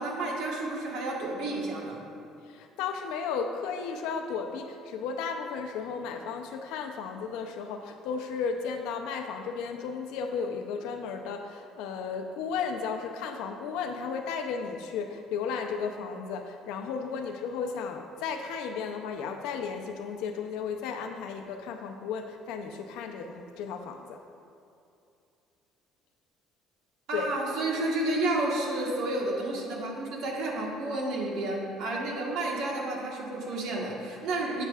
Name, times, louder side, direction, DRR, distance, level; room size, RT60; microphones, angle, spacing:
voice 1, 0.0-2.0 27.1-34.6, right 2 dB, 70° right, -1 dB, 1.4 m, -31 dB
voice 2, 2.5-24.2 27.1-27.3, left 6 dB, 85° left, 5 dB, 0.6 m, -34 dB
8.3 x 8.1 x 2.4 m, 2.6 s
cardioid pair, 140°, 0 cm